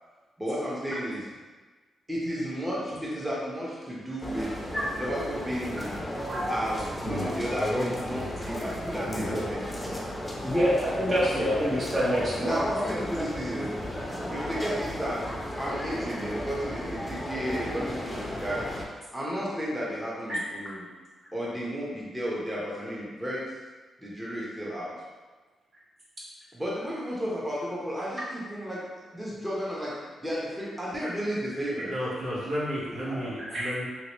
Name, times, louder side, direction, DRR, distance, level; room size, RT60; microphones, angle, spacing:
voice 1, 0.4-1.3 2.1-4.6 4.9-6.0 6.5-10.0 12.4-13.8 14.3-18.7 19.1-20.9 21.3-23.6 24.0-25.0 26.5-31.9 33.1-33.6, equal, 10° right, -6 dB, 1.0 m, -33 dB
sound 1, 4.2-18.8, equal, 10° left, 0.7 m, -34 dB
voice 2, 9.1-9.4 10.4-12.6 20.3-20.7 33.4-33.7, equal, 45° right, -7 dB, 1.4 m, -27 dB
voice 3, 31.9-33.8, equal, 80° right, -9 dB, 1.2 m, -32 dB
3.1 x 2.9 x 3.0 m, 1.3 s
cardioid pair, 75°, 0 cm